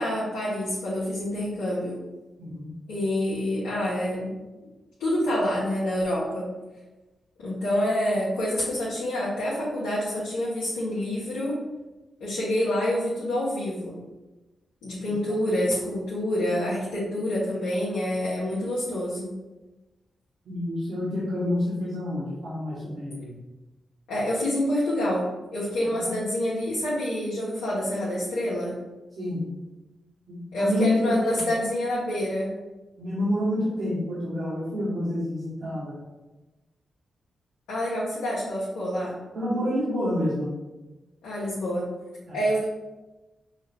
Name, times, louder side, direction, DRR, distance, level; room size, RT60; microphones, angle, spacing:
voice 1, 0.0-2.0 2.9-4.4 5.0-6.5 7.4-11.6 12.2-13.9 14.8-19.3 24.1-25.2 25.5-28.7 30.5-32.5 37.7-39.1 41.2-41.9 42.3-42.6, left 1 dB, 85° left, -10 dB, 1.2 m, -27 dB
voice 2, 20.4-23.3 26.0-26.2 29.2-29.4 30.3-31.4 33.0-36.0 39.3-40.5 42.3-42.4, left 1 dB, 70° right, -10 dB, 1.4 m, -28 dB
5.4 x 2.5 x 3.5 m, 1.1 s
supercardioid pair, 40°, 0 cm